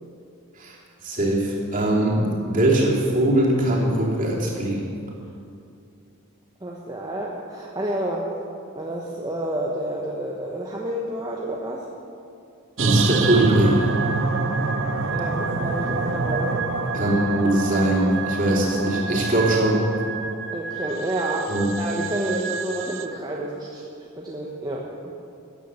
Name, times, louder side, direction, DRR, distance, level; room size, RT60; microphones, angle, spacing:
voice 1, 1.0-4.9 12.8-13.8 16.9-19.8 21.5-21.7, right 1 dB, 40° right, -4 dB, 3.1 m, -21 dB
voice 2, 6.6-8.3 8.7-11.9 15.1-16.6 20.5-23.8 24.2-24.9, right 1 dB, 20° right, -3 dB, 1.0 m, -29 dB
sound 1, 12.8-23.1, right 4 dB, 60° right, 0.8 m, -27 dB
14.0 x 9.9 x 6.9 m, 2.6 s
head